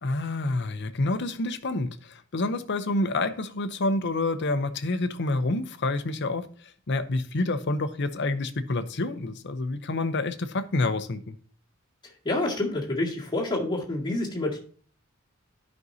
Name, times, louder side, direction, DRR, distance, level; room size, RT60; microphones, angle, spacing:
voice 1, 0.0-11.4, left 2 dB, 55° left, 11 dB, 0.7 m, -28 dB
voice 2, 12.2-14.6, left 2 dB, 20° left, -3 dB, 2.0 m, -28 dB
12.5 x 5.3 x 2.7 m, 0.43 s
head